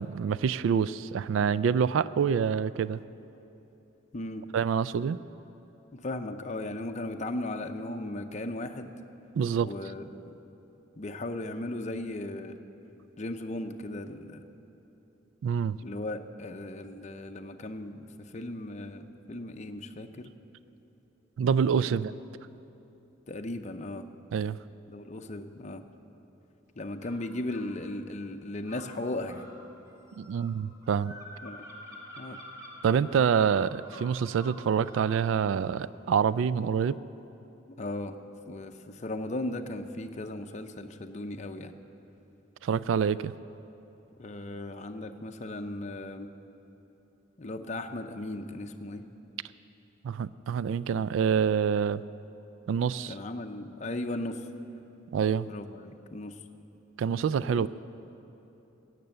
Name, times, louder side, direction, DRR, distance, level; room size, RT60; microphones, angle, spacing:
voice 1, 0.0-3.0 4.5-5.2 9.4-9.7 15.4-15.8 21.4-22.1 24.3-24.6 30.2-31.1 32.8-37.0 42.6-43.3 50.0-52.0 52.7-53.1 55.1-55.5 57.0-57.7, right 7 dB, 75° right, 17 dB, 0.3 m, -26 dB
voice 2, 4.1-4.5 5.9-8.9 9.6-10.2 11.0-12.6 13.2-14.4 15.8-20.3 21.8-22.0 23.3-24.0 24.9-25.8 26.8-29.5 31.4-31.6 32.2-32.4 37.8-38.2 38.4-41.7 44.2-46.3 47.4-49.0 53.1-54.4 55.4-56.4 57.4-57.7, left 1 dB, 35° left, 6 dB, 0.6 m, -37 dB
sound 1, 27.0-27.7 28.6-35.2, left 1 dB, 15° right, 1.9 m, -48 dB
17.5 x 6.7 x 8.8 m, 3.0 s
head